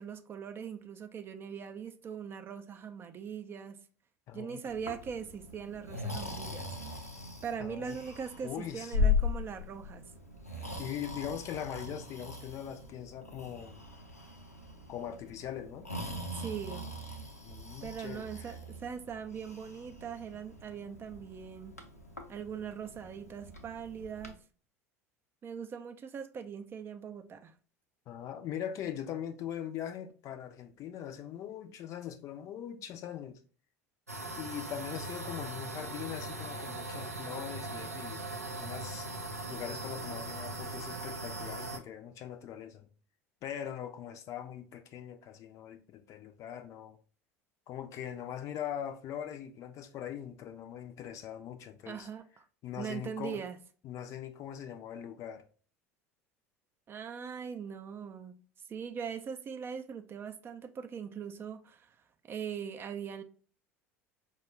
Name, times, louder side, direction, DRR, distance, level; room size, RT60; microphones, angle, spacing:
voice 1, 0.0-3.8 4.3-6.7 7.4-10.0 16.3-16.9 17.8-21.8 22.3-24.4 25.4-27.5 51.9-52.4 52.8-53.6 56.9-58.4 58.7-62.0 62.2-63.2, right 7 dB, 30° right, 0.4 m, -41 dB
voice 2, 4.3-4.6 7.6-8.0 8.4-9.0 10.8-13.9 14.9-15.9 17.4-18.6 28.1-33.4 34.4-38.2 38.6-39.1 39.5-42.9 43.4-47.0 47.7-52.1 52.6-53.4 53.8-55.4, left 10 dB, 40° left, 0.5 m, -41 dB
Breathing, 4.7-24.3, left 4 dB, 85° left, 0.5 m, -39 dB
sound 1, 34.1-41.8, right 2 dB, 85° right, 0.4 m, -40 dB
4.8 x 2.2 x 3.1 m
figure-of-eight pair, 70°, 8 cm